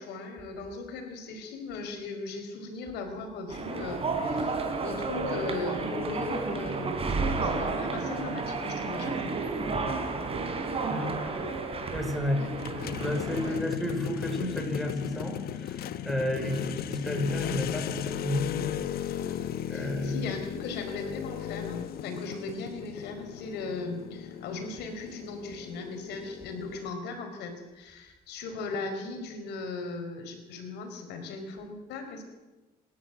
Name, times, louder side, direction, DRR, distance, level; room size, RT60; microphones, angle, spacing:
voice 1, 0.0-9.3 12.3-12.5 13.4-13.6 16.4-16.5 19.7-32.2, left 3 dB, 85° left, 5 dB, 4.5 m, -38 dB
sound 1, 3.5-13.6, right 3 dB, 35° right, 3.7 m, -32 dB
voice 2, 11.9-12.5 13.0-18.7 19.7-20.3, left 1 dB, ahead, 3 dB, 5.4 m, -31 dB
sound 2, 12.6-26.9, left 10 dB, 65° left, 1.1 m, -36 dB
27.0 x 12.5 x 8.2 m, 1.2 s
cardioid pair, 110°, 17 cm